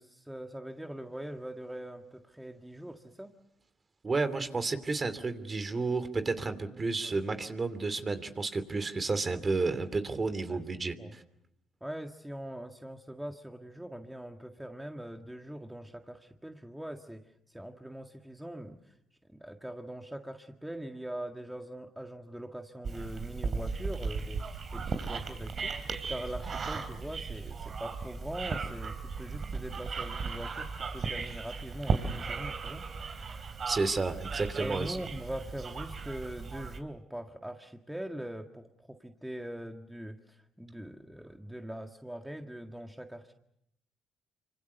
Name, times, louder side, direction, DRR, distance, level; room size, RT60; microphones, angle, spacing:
voice 1, 0.0-3.3 7.0-7.2 10.5-10.6 11.0-11.2 11.8-17.2 17.5-18.9 19.3-24.5 24.7-32.9 34.6-43.3, right 1 dB, 5° right, 4 dB, 1.8 m, -42 dB
voice 2, 4.0-11.2 33.7-35.0, right 3 dB, 30° right, 11 dB, 2.8 m, -31 dB
sound 1, 22.8-36.8, right 4 dB, 45° right, 3.4 m, -36 dB
26.0 x 25.5 x 6.9 m, 0.76 s
supercardioid pair, 75°, 0 cm